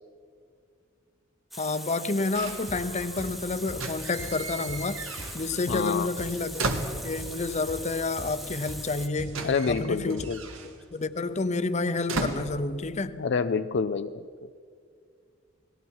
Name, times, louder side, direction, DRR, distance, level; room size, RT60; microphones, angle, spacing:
Water tap faucet, 1.5-9.1, equal, ahead, 1.0 m, -41 dB
voice 1, 1.6-5.0 5.3-6.7 7.0-10.2 10.6-13.2, left 3 dB, 35° left, 11 dB, 0.8 m, -29 dB
sound 1, 2.3-3.3 3.7-5.7 5.9-7.5 8.5-8.6 8.8-13.3 13.6-14.0, right 2 dB, 85° right, 1.8 m, -36 dB
sound 2, 2.7-2.9 3.2-11.0, equal, 60° right, 7.5 m, -42 dB
voice 2, 5.7-6.1 9.4-10.4 13.1-14.3, left 5 dB, 60° left, 9 dB, 0.5 m, -27 dB
30.0 x 19.5 x 4.7 m, 2.2 s
head